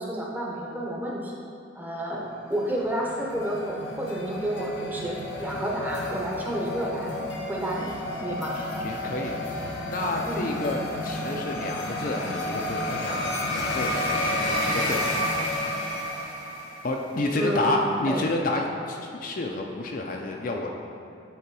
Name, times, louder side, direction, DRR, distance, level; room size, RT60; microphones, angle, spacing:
voice 1, 0.0-1.4 1.7-7.2 7.5-7.9 8.2-8.5 10.2-10.5 17.3-17.8 18.1-18.2, right 1 dB, 10° right, -3 dB, 0.8 m, -30 dB
sound 1, 2.4-17.1, left 1 dB, 65° left, 0.9 m, -31 dB
voice 2, 8.5-9.5 9.9-15.0 16.8-20.7, left 2 dB, 40° left, 1 dB, 0.4 m, -30 dB
8.3 x 3.8 x 4.7 m, 2.7 s
head